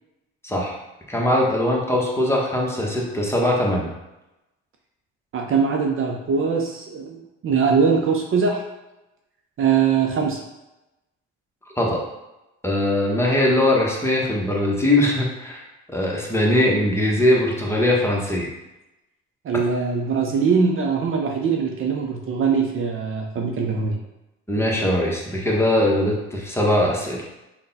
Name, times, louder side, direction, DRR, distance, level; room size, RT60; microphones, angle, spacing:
voice 1, 0.4-0.8 1.1-3.9 11.8-12.0 12.6-15.6 15.9-18.5 24.5-27.2, left 1 dB, 10° left, -3 dB, 1.0 m, -21 dB
voice 2, 5.3-8.6 9.6-10.4 19.4-24.0, right 5 dB, 45° right, 1 dB, 0.6 m, -22 dB
3.7 x 2.3 x 4.0 m, 0.95 s
supercardioid pair, 75°, 29 cm